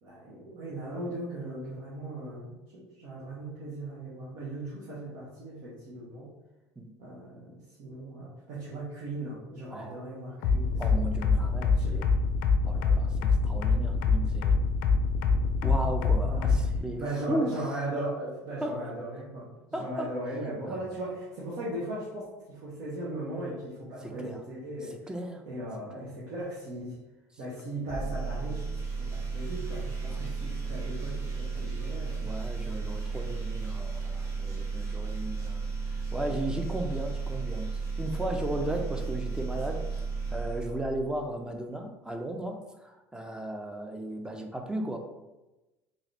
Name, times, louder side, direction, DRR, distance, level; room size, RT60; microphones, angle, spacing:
voice 1, 0.0-6.3 7.0-11.0 11.8-12.0 16.2-16.5 17.0-24.9 25.5-27.0 27.4-28.6 29.1-32.2, right 1 dB, 65° right, -7 dB, 1.2 m, -38 dB
sound 1, 10.4-16.8, left 5 dB, 70° left, 0.5 m, -24 dB
voice 2, 10.8-12.1 12.7-14.5 15.6-17.8 18.6-18.8 19.7-20.1 20.7-20.9 24.0-24.4 24.8-25.4 26.0-26.1 30.1-30.3 30.6-30.7 31.5-31.7 32.2-35.7 36.1-39.8 40.3-45.0, right 1 dB, 10° right, 4 dB, 0.6 m, -36 dB
sound 2, 27.9-41.3, right 4 dB, 40° right, 1.1 m, -34 dB
3.7 x 2.9 x 3.3 m, 1.0 s
supercardioid pair, 85°, 8 cm